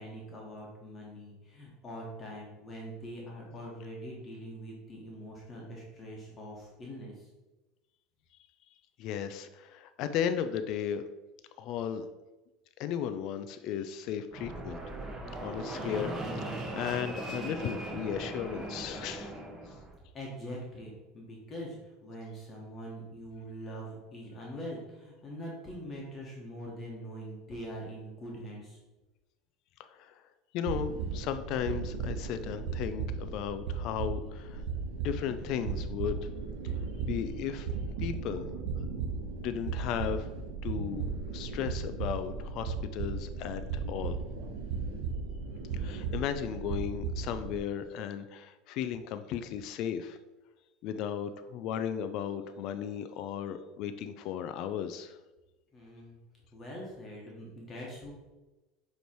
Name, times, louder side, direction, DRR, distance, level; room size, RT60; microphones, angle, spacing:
voice 1, 0.0-7.3 20.1-28.8 55.7-56.1 56.5-58.1, equal, 20° left, -3 dB, 1.4 m, -43 dB
voice 2, 9.0-11.0 11.6-12.1 12.8-14.8 15.4-19.3 29.9-30.2 30.5-34.6 35.0-36.3 36.6-36.7 37.0-37.7 38.0-38.4 38.8-38.9 39.4-40.3 40.6-41.1 41.3-44.2 45.7-50.2 50.8-55.2, left 9 dB, 50° left, 10 dB, 0.4 m, -35 dB
Fixed-wing aircraft airplane, 14.3-19.9, right 2 dB, 20° right, 1.5 m, -38 dB
sound 1, 30.6-47.6, right 5 dB, 75° right, 1.1 m, -36 dB
8.0 x 3.3 x 4.5 m, 1.1 s
supercardioid pair, 150°, 0 cm